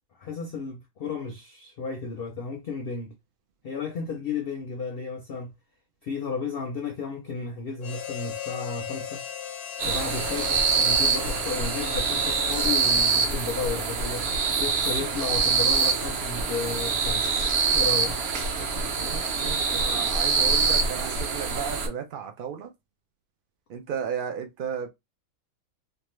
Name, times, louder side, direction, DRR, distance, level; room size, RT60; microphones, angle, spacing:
voice 1, 0.2-3.1 3.6-5.5 6.0-9.2 9.8-14.3 14.6-17.3 17.7-18.1, left 5 dB, 60° left, 0.6 m, -33 dB
Harmonica, 7.8-13.6, left 10 dB, 90° left, 1.1 m, -37 dB
sound 1, 9.8-21.9, right 5 dB, 55° right, 0.7 m, -25 dB
voice 2, 19.0-22.7 23.7-24.9, right 7 dB, 85° right, 0.4 m, -34 dB
2.8 x 2.3 x 3.0 m
omnidirectional pair, 1.5 m